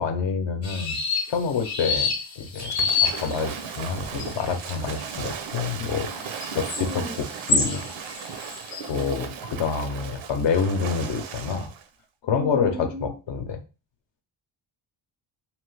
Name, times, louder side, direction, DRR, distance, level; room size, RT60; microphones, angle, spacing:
voice 1, 0.0-2.7 3.0-7.8 8.9-11.7 12.2-13.6, left 5 dB, 70° left, 6 dB, 0.7 m, -28 dB
sound 1, 0.6-9.0, left 4 dB, 35° left, 0.8 m, -29 dB
Waves surf / Splash splatter, 2.6-11.9, right 7 dB, 75° right, 0.6 m, -36 dB
voice 2, 6.8-7.2 12.3-13.1, left 1 dB, 15° right, 4 dB, 0.4 m, -34 dB
3.0 x 2.3 x 3.1 m, 0.32 s
wide cardioid pair, 150°, 47 cm